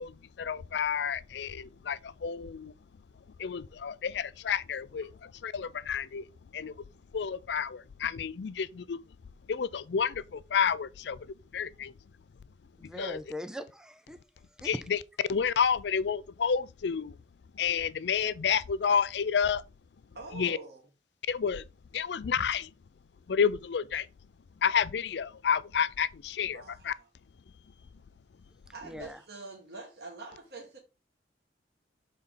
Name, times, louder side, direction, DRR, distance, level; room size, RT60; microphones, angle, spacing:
voice 1, 0.0-2.7 3.4-6.9 7.1-9.2 9.5-11.9 12.8-13.2 14.6-15.0 15.3-17.2 17.5-19.6 20.3-20.6 21.3-21.6 21.9-22.7 23.3-24.1 24.6-26.9, left 7 dB, 75° left, 0.4 m, -30 dB
voice 2, 12.8-14.2 14.5-14.7 28.8-29.2, equal, 5° right, 0.5 m, -41 dB
voice 3, 20.1-20.8 26.5-26.9 28.7-30.8, right 3 dB, 60° right, 1.4 m, -45 dB
6.6 x 4.2 x 3.8 m
head